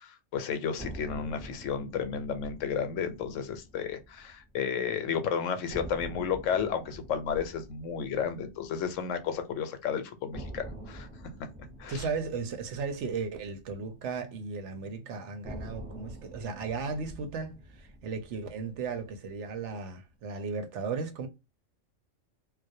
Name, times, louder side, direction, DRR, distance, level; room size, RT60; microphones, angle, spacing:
voice 1, 0.0-11.1 11.8-12.0, left 7 dB, 80° left, 0.9 m, -32 dB
sound 1, 0.8-4.9 5.1-5.2 5.7-9.8 10.3-14.7 15.4-19.8, right 1 dB, 10° right, 0.5 m, -46 dB
voice 2, 11.9-21.3, right 5 dB, 70° right, 0.9 m, -35 dB
2.3 x 2.0 x 2.6 m
omnidirectional pair, 1.3 m